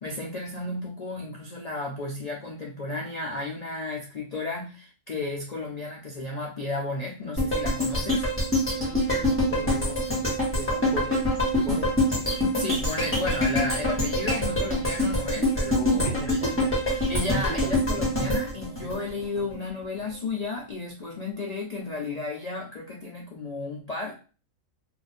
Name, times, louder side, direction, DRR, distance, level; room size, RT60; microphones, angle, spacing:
voice 1, 0.0-8.3 12.5-16.5 16.9-24.2, left 3 dB, 55° left, -1 dB, 0.4 m, -33 dB
sound 1, 7.4-19.6 20.0-20.1, left 1 dB, 10° left, 1.0 m, -25 dB
voice 2, 8.8-11.2 11.6-12.2 16.0-16.7 17.6-17.7, right 2 dB, 55° right, -2 dB, 0.5 m, -38 dB
2.5 x 2.5 x 4.1 m, 0.35 s
omnidirectional pair, 1.4 m